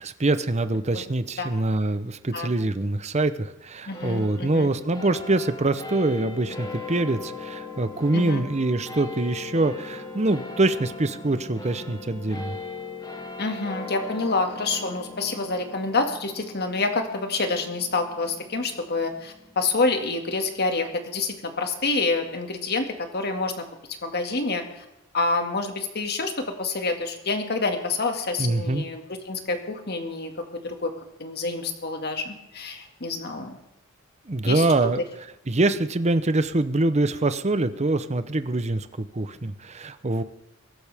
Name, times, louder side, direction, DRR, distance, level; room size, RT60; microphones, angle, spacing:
voice 1, 0.0-12.6 28.4-28.8 34.3-35.0 35.5-40.2, right 2 dB, 35° right, 12 dB, 0.8 m, -24 dB
voice 2, 3.9-4.7 8.1-8.4 13.4-22.9 23.1-23.5 24.0-24.8 25.1-30.9 31.2-33.6 34.4-34.7, left 3 dB, 50° left, 5 dB, 2.1 m, -27 dB
sound 1, 3.9-20.6, left 3 dB, 20° left, 2.3 m, -39 dB
23.0 x 12.0 x 3.6 m, 0.91 s
head